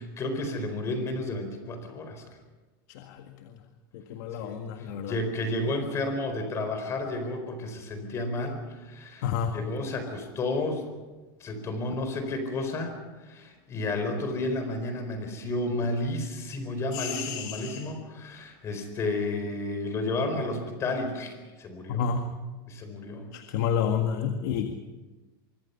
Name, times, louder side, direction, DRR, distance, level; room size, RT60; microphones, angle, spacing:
voice 1, 0.0-2.2 4.4-4.5 5.1-9.3 9.5-10.9 11.4-13.0 13.2-21.3 21.6-22.0 22.7-23.3, left 2 dB, 25° left, 7 dB, 4.4 m, -31 dB
voice 2, 2.9-3.6 3.9-5.1 9.2-9.6 16.9-17.9 21.9-22.3 23.3-24.7, left 7 dB, 60° left, 6 dB, 1.8 m, -30 dB
25.0 x 24.0 x 5.8 m, 1.2 s
supercardioid pair, 165°, 11 cm